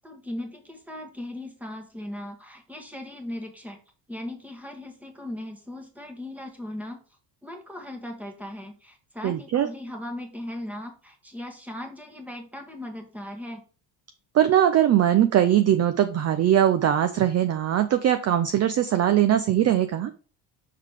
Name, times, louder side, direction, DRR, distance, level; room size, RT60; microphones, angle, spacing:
voice 1, 0.0-3.8 4.1-7.0 7.4-13.6, left 1 dB, 5° right, 4 dB, 1.4 m, -38 dB
voice 2, 9.2-9.7 14.3-20.1, right 11 dB, 35° right, 10 dB, 0.5 m, -21 dB
6.6 x 3.9 x 4.8 m, 0.38 s
cardioid pair, 145°, 46 cm